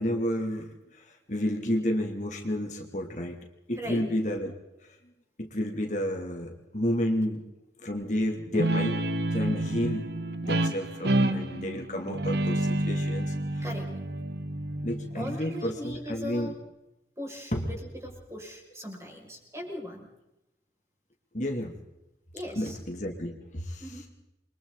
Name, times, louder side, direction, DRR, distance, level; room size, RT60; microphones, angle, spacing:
voice 1, 0.0-3.4 3.7-4.5 5.4-7.4 7.8-9.0 9.3-10.1 10.4-13.6 14.8-16.5 17.5-17.7 21.3-21.8 22.6-23.9, equal, 45° left, 2 dB, 2.8 m, -31 dB
voice 2, 3.8-4.1 13.6-14.0 15.1-16.6 17.2-20.1 22.3-22.8 23.8-24.1, equal, 15° right, 0 dB, 6.3 m, -39 dB
Guitar, 8.5-15.7, right 1 dB, 70° right, 1.5 m, -29 dB
29.5 x 24.0 x 4.1 m, 0.92 s
head